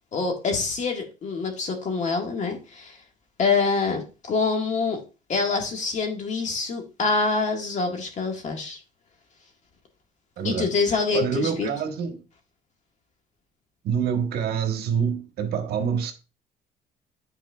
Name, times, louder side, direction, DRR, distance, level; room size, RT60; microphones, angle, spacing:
voice 1, 0.1-3.0 3.4-5.0 5.3-8.8 10.4-11.7, left 4 dB, 45° left, 1.8 m, -26 dB
voice 2, 10.4-10.7 11.1-12.2 13.8-16.1, right 7 dB, 70° right, 1.3 m, -26 dB
9.0 x 4.5 x 2.4 m
cardioid pair, 110°, 17 cm